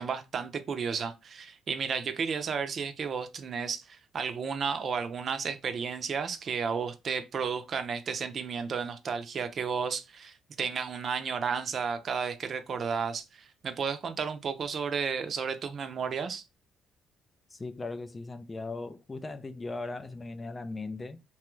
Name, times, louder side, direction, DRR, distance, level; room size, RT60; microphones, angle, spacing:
voice 1, 0.0-16.4, right 6 dB, 50° right, 0.5 m, -33 dB
voice 2, 17.5-21.2, left 3 dB, 25° left, 0.3 m, -38 dB
3.0 x 2.3 x 3.0 m
cardioid pair, 100°, 0 cm